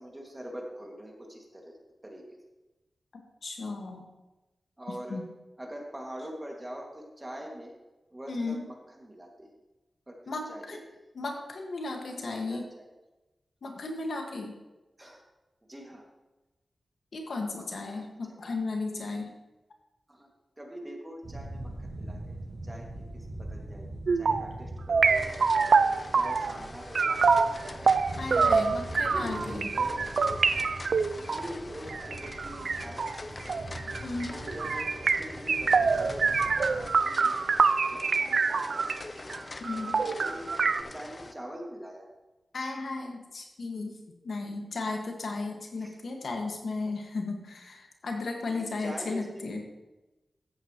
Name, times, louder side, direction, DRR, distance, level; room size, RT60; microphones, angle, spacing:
voice 1, 0.0-1.8 2.0-2.4 4.8-5.2 5.6-7.7 8.1-9.5 10.1-10.8 12.0-12.9 15.0-15.2 15.7-16.0 17.6-18.4 20.1-20.3 20.6-22.4 22.6-25.5 26.1-27.9 29.0-30.3 31.1-33.5 34.3-37.4 37.9-38.9 39.8-42.1 45.8-45.9 48.4-49.4, equal, 20° right, 0 dB, 2.1 m, -44 dB
voice 2, 3.1-4.0 4.9-5.3 8.3-8.6 10.3-10.8 11.1-12.6 13.6-14.6 17.1-19.3 28.2-29.7 34.0-34.4 39.6-40.0 42.5-44.0 44.2-49.6, left 3 dB, 75° left, 2 dB, 1.6 m, -35 dB
sound 1, 21.2-37.0, right 1 dB, 90° right, 2.2 m, -43 dB
sound 2, 24.1-24.5 24.9-26.6 26.9-39.0 39.3-39.4 39.6-40.8, right 5 dB, 70° right, 0.4 m, -26 dB
Printing my thesis, 25.0-41.3, left 2 dB, 30° left, 0.6 m, -43 dB
14.0 x 8.7 x 3.0 m, 1.1 s
wide cardioid pair, 95°, 0 cm